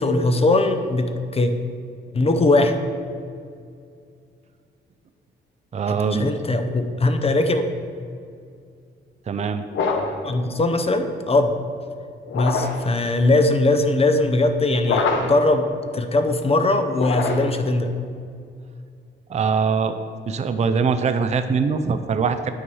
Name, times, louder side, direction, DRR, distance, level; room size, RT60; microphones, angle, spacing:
voice 1, 0.0-1.5 2.1-2.7 5.9-7.7 10.2-11.5 12.3-15.7 15.9-17.9, left 2 dB, 30° left, 7 dB, 0.6 m, -20 dB
voice 2, 5.7-6.3 9.3-9.6 19.3-19.9 20.3-22.5, right 5 dB, 35° right, 9 dB, 0.4 m, -22 dB
sound 1, 9.7-10.3 12.3-12.9 14.8-15.5 16.9-17.7, left 4 dB, 75° left, 0.8 m, -24 dB
8.8 x 4.7 x 4.7 m, 2.3 s
cardioid pair, 100°, 20 cm